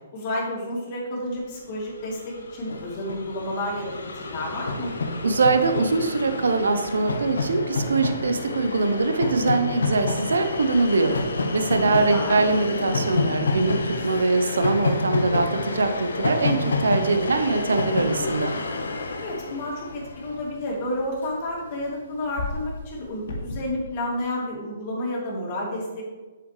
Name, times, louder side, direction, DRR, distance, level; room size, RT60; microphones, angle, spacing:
voice 1, 0.1-4.9 11.8-12.4 19.1-26.0, left 1 dB, 40° left, -3 dB, 2.6 m, -31 dB
Train, 1.7-1.8 2.0-20.4, left 3 dB, 85° left, 1.0 m, -29 dB
voice 2, 5.2-11.2 11.5-18.6, right 3 dB, 80° right, 7 dB, 0.9 m, -22 dB
sound 1, 18.6-23.7, left 3 dB, 65° left, 2.1 m, -39 dB
8.5 x 6.9 x 3.3 m, 1.3 s
hypercardioid pair, 140°, 0 cm